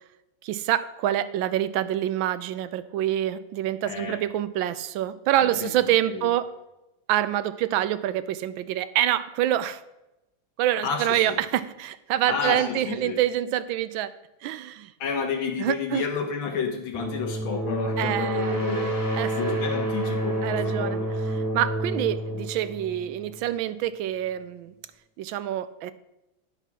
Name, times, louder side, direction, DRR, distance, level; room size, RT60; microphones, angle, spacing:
voice 1, 0.4-6.5 7.1-9.8 10.6-14.1 14.4-14.9 15.6-16.0 18.0-18.6 19.1-19.5 20.4-24.7 25.2-25.9, right 12 dB, 80° right, 14 dB, 1.4 m, -26 dB
voice 2, 3.8-4.2 5.4-6.3 10.8-11.4 12.3-13.2 15.0-19.0 19.4-21.1, left 6 dB, 90° left, 3 dB, 2.2 m, -31 dB
sound 1, 16.9-23.6, right 1 dB, 10° left, 1.4 m, -29 dB
10.0 x 5.8 x 5.9 m, 0.95 s
omnidirectional pair, 2.1 m